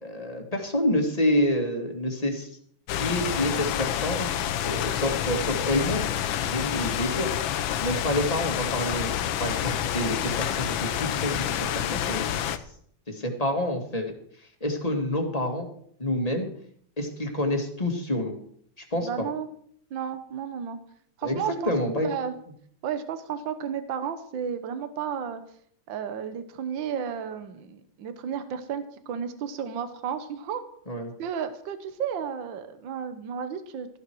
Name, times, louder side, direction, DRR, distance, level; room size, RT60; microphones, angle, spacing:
voice 1, 0.0-2.5 2.9-4.3 4.6-6.1 6.4-7.5 7.8-12.6 13.1-14.1 14.6-15.7 16.0-16.5 17.0-18.3 18.8-19.1 21.2-22.1 30.9-31.1, left 1 dB, 20° left, 3 dB, 2.1 m, -28 dB
sound 1, 2.9-12.6, left 10 dB, 80° left, 1.5 m, -28 dB
voice 2, 19.0-19.5 19.9-20.8 21.2-22.3 22.8-25.4 25.9-30.6 31.2-33.9, right 7 dB, 70° right, 10 dB, 1.8 m, -33 dB
14.5 x 12.0 x 4.7 m, 0.62 s
omnidirectional pair, 2.2 m